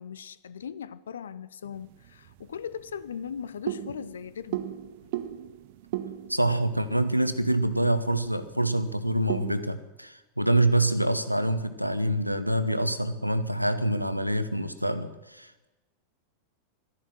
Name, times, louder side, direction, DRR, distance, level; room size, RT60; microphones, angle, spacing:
voice 1, 0.0-4.6 5.0-5.1, left 7 dB, 65° left, 0.6 m, -39 dB
sound 1, 1.7-9.6, right 12 dB, 50° right, 0.8 m, -38 dB
voice 2, 6.3-15.7, right 1 dB, 90° right, 0.9 m, -26 dB
12.5 x 11.0 x 9.0 m
figure-of-eight pair, 90°, 0 cm